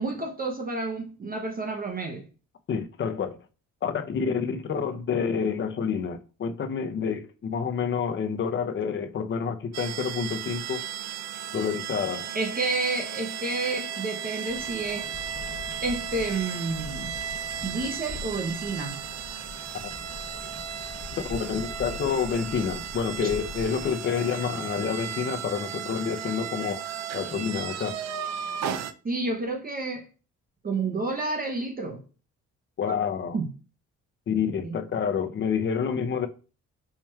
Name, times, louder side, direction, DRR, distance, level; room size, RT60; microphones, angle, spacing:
voice 1, 0.0-2.2 12.3-15.1 15.8-17.1 17.6-19.0 23.2-23.3 29.0-30.1 30.6-32.0 32.9-33.0 33.3-33.5 34.6-34.8, right 3 dB, 30° right, 0.7 m, -30 dB
voice 2, 2.7-3.4 3.8-10.8 11.5-12.3 21.2-26.8 27.1-28.0 32.8-33.4 34.3-36.3, left 6 dB, 40° left, 0.6 m, -28 dB
sound 1, 9.7-28.9, right 8 dB, 60° right, 0.5 m, -35 dB
sound 2, 14.5-23.9, left 3 dB, 5° left, 1.1 m, -43 dB
4.5 x 2.9 x 2.3 m
cardioid pair, 90°, 30 cm